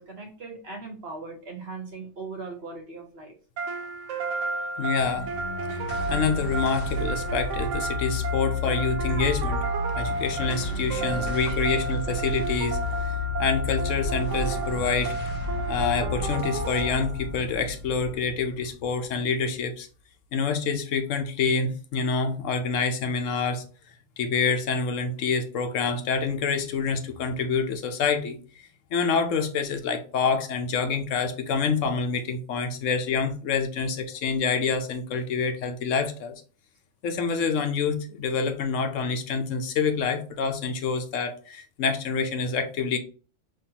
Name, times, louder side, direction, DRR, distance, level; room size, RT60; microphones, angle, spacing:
voice 1, 0.0-3.3 4.5-4.7 11.0-11.2, right 3 dB, 55° right, 1.3 m, -39 dB
sound 1, 3.6-17.4, right 4 dB, 85° right, 1.0 m, -32 dB
voice 2, 4.8-5.3 6.1-9.6 9.9-15.1 15.7-19.9 20.3-23.6 24.2-28.4 28.9-36.4 37.0-43.0, left 5 dB, 85° left, 1.1 m, -27 dB
sound 2, 5.0-19.6, left 3 dB, 50° left, 1.3 m, -32 dB
5.4 x 3.1 x 2.8 m
omnidirectional pair, 1.3 m